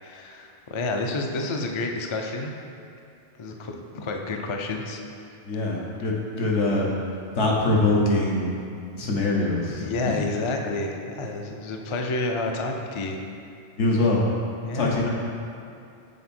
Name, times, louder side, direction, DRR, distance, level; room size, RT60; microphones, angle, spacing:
voice 1, 0.0-2.5 3.4-5.0 9.8-13.2 14.6-14.9, left 2 dB, 50° left, 2 dB, 0.3 m, -29 dB
voice 2, 5.4-6.9 7.3-8.5 9.0-10.2 13.8-14.2 14.7-15.1, left 2 dB, 80° left, -3 dB, 1.3 m, -23 dB
6.6 x 4.4 x 4.3 m, 2.5 s
omnidirectional pair, 1.2 m